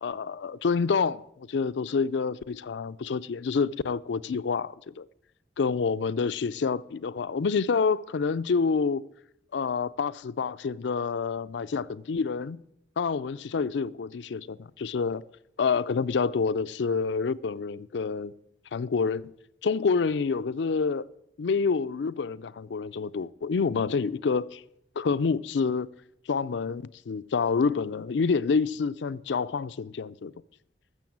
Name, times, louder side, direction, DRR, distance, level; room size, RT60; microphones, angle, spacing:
voice 1, 0.0-5.1 5.6-9.1 9.5-12.6 13.0-15.2 15.6-18.3 18.7-19.3 19.6-21.1 21.4-24.6 25.0-25.9 26.3-30.3, left 5 dB, 85° left, 0.4 m, -28 dB
14.0 x 7.1 x 7.2 m
head